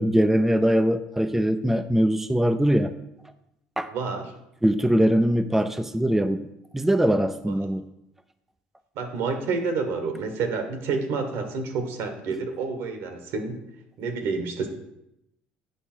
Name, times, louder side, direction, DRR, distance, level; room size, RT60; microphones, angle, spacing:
voice 1, 0.0-2.9 3.8-3.9 4.6-6.5 6.7-7.8, equal, 5° right, 9 dB, 0.4 m, -22 dB
voice 2, 3.9-4.3 8.9-13.6 14.0-14.7, right 4 dB, 70° right, 6 dB, 1.3 m, -29 dB
8.2 x 5.4 x 4.4 m, 0.84 s
supercardioid pair, 85°, 4 cm